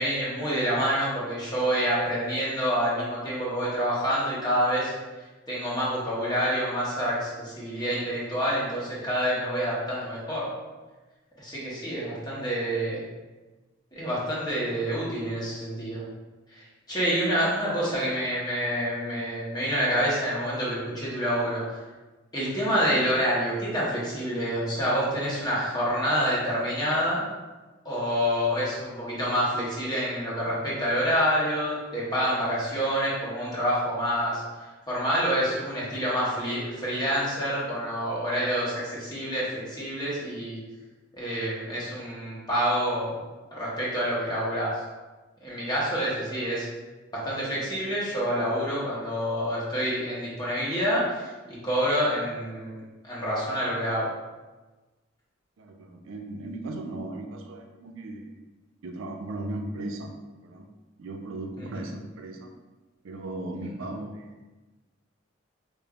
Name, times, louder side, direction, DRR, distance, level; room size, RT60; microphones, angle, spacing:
voice 1, 0.0-4.9 5.5-10.5 11.4-13.0 14.0-16.0 16.5-21.8 22.3-27.2 27.8-34.4 34.9-40.6 41.2-43.2 43.5-44.7 45.4-46.6 47.2-54.1 61.6-61.7, equal, 20° left, -7 dB, 1.0 m, -27 dB
voice 2, 55.6-58.3 58.8-60.1 60.4-60.7 61.0-62.5 63.0-64.4, right 2 dB, 80° right, 3 dB, 0.4 m, -37 dB
5.1 x 2.5 x 2.3 m, 1.2 s
head